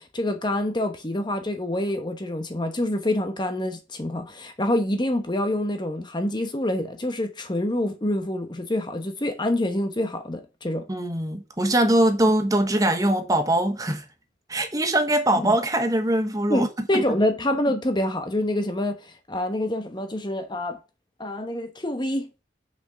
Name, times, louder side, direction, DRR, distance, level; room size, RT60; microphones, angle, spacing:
voice 1, 0.0-10.8 15.4-15.5 16.5-20.8 21.2-22.3, left 1 dB, 25° left, 1.0 m, -26 dB
voice 2, 10.9-14.0 14.5-16.7, right 1 dB, 20° right, 1.2 m, -22 dB
6.0 x 5.8 x 6.8 m
head